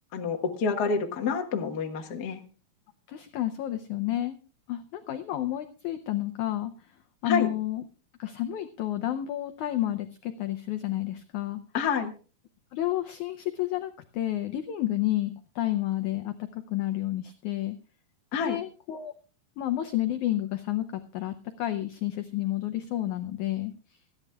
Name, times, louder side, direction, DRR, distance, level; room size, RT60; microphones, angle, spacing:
voice 1, 0.1-2.4 7.2-7.5 11.7-12.1 18.3-18.6, left 5 dB, 60° left, 4 dB, 1.0 m, -28 dB
voice 2, 3.1-4.4 4.7-6.7 7.2-7.8 8.2-11.6 12.7-17.8 18.4-19.1 19.6-24.0, left 14 dB, 80° left, 7 dB, 1.7 m, -30 dB
27.0 x 10.5 x 2.3 m, 0.35 s
omnidirectional pair, 4.4 m